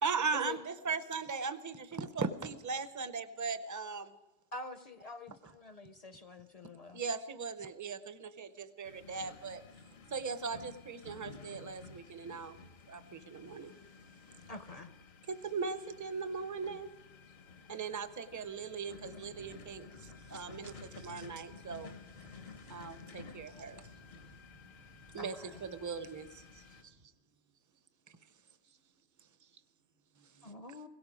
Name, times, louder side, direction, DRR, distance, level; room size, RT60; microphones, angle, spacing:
voice 1, 0.0-4.1 6.9-9.6 10.1-12.6 12.9-13.7 15.3-16.9 17.7-21.9 22.7-23.9 25.1-25.3 25.6-26.4 30.2-30.5, right 5 dB, 25° right, 12 dB, 0.5 m, -39 dB
voice 2, 4.5-7.0 14.5-14.9 25.2-25.6 30.4-30.9, left 3 dB, 45° left, 10 dB, 0.6 m, -46 dB
sound 1, 8.8-26.8, left 5 dB, 75° left, 1.1 m, -53 dB
sound 2, 18.9-27.1, equal, 90° right, 4.3 m, -60 dB
voice 3, 26.5-27.1 27.7-27.9 28.6-29.6, right 7 dB, 70° right, 9 dB, 1.0 m, -69 dB
17.0 x 17.0 x 5.0 m, 1.1 s
omnidirectional pair, 1.1 m